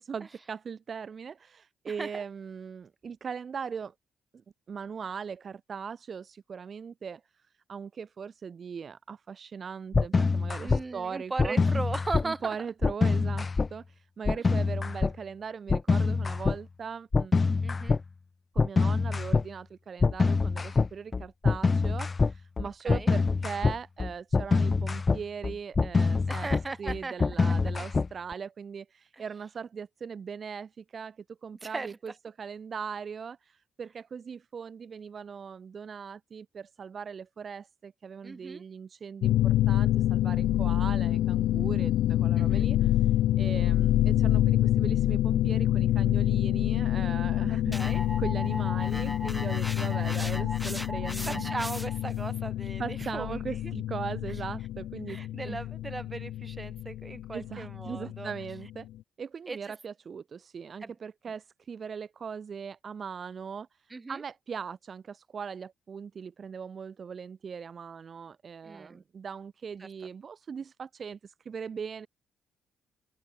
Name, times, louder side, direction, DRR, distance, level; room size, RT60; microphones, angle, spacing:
voice 1, 0.0-3.9 4.7-7.4 7.7-11.6 12.2-17.3 18.5-26.5 26.8-32.1 32.4-47.8 48.2-51.5 52.8-55.2 55.5-55.6 57.3-58.9 59.2-72.1, right 6 dB, 45° right, 1.5 m, -40 dB
voice 2, 1.9-2.2 10.6-12.6 17.6-18.0 22.8-23.1 26.3-27.1 27.4-27.5 29.1-29.2 31.6-32.0 38.2-38.6 42.3-42.7 47.5-48.0 51.2-53.7 55.1-58.3 59.5-59.6 60.8-60.9 63.9-64.2 68.6-69.0 69.8-69.9, right 3 dB, 25° right, 5.0 m, -38 dB
sound 1, 9.9-10.8 11.4-12.3 12.8-13.7 14.3-15.1 15.7-16.6 17.1-18.0 18.6-19.5 20.0-28.3, left 4 dB, 30° left, 0.3 m, -25 dB
sound 2, 39.2-58.7, left 13 dB, 80° left, 1.0 m, -27 dB
sound 3, 47.7-52.1, equal, ahead, 0.8 m, -38 dB
open air
cardioid pair, 90°, 0 cm